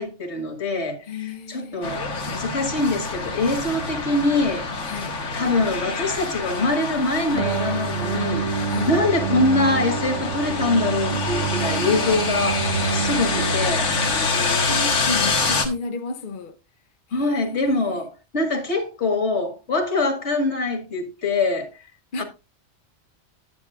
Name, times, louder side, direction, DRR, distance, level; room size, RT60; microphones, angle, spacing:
voice 1, 0.0-4.7 5.3-8.5 8.9-12.6 12.9-13.9 17.1-21.7 22.2-22.3, left 2 dB, 70° left, 2.1 m, -24 dB
voice 2, 1.1-2.1 4.9-5.1 8.7-8.9 11.1-11.2 11.5-12.3 14.1-16.6 17.1-18.1 22.1-22.2, left 3 dB, 50° left, 0.8 m, -33 dB
sound 1, 1.8-15.7, left 4 dB, 85° left, 1.7 m, -26 dB
sound 2, 7.3-14.4, right 6 dB, 85° right, 2.1 m, -28 dB
9.6 x 9.5 x 2.4 m
omnidirectional pair, 1.2 m